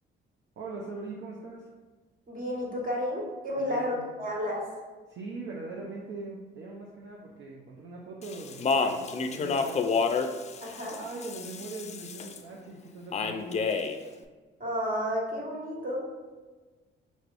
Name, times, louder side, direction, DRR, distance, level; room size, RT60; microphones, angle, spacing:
voice 1, 0.6-1.7 3.5-4.1 5.1-9.9 10.8-13.7, right 3 dB, 70° right, -2 dB, 0.6 m, -41 dB
voice 2, 2.3-4.6 10.6-11.0 14.6-16.0, equal, 45° right, -3 dB, 1.5 m, -31 dB
Speech, 8.2-12.4 13.1-14.0, left 4 dB, 35° left, 0.4 m, -29 dB
5.2 x 3.2 x 2.5 m, 1.3 s
cardioid pair, 90°, 20 cm